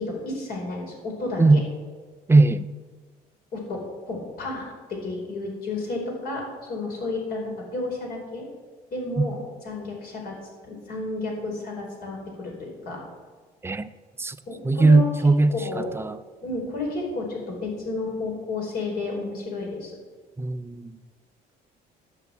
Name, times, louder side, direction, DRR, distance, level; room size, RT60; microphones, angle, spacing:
voice 1, 0.0-1.6 3.5-3.8 4.1-6.4 6.7-8.4 8.9-9.4 9.6-10.3 10.6-13.0 14.5-15.1 15.5-15.9 16.4-20.0, left 3 dB, 65° left, 4.7 m, -31 dB
voice 2, 2.3-2.7 9.2-9.3 13.6-13.9 14.2-14.4 14.6-15.5 15.9-16.2 20.4-20.9, right 3 dB, 15° right, 0.5 m, -18 dB
12.0 x 6.9 x 8.3 m
cardioid pair, 110°, 17 cm